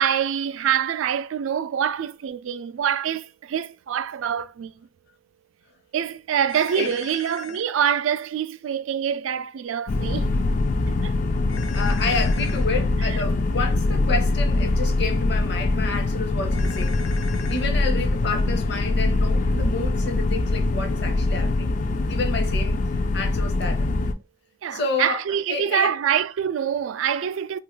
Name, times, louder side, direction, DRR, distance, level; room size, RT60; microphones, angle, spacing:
voice 1, 0.0-4.7 5.9-10.3 10.9-11.1 24.6-27.6, right 8 dB, 75° right, 0.3 m, -25 dB
sound 1, 6.5-7.6 11.5-12.6 16.5-17.7, left 6 dB, 90° left, 0.6 m, -40 dB
sound 2, 9.9-24.1, left 2 dB, 40° left, 0.3 m, -23 dB
voice 2, 11.7-17.0 17.5-21.7 22.1-22.8 23.1-23.9 24.7-25.2 25.5-25.9, left 3 dB, 55° left, 0.8 m, -29 dB
2.9 x 2.4 x 3.1 m
head